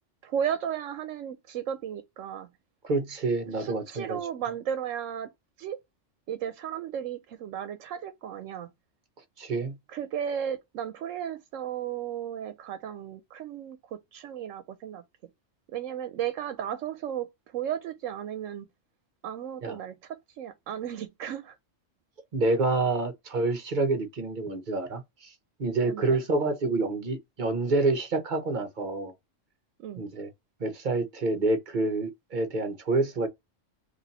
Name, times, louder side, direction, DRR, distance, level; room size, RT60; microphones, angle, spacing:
voice 1, 0.2-2.5 3.6-5.3 5.6-5.8 6.3-8.7 9.9-15.0 15.7-18.7 19.2-21.6 25.9-26.2 29.8-30.0, right 9 dB, 80° right, 1.0 m, -34 dB
voice 2, 2.8-4.2 9.4-9.7 19.6-19.8 22.3-25.3 25.6-29.1 30.0-30.3 30.6-33.3, right 3 dB, 45° right, 0.9 m, -28 dB
3.1 x 2.8 x 4.0 m
omnidirectional pair, 1.3 m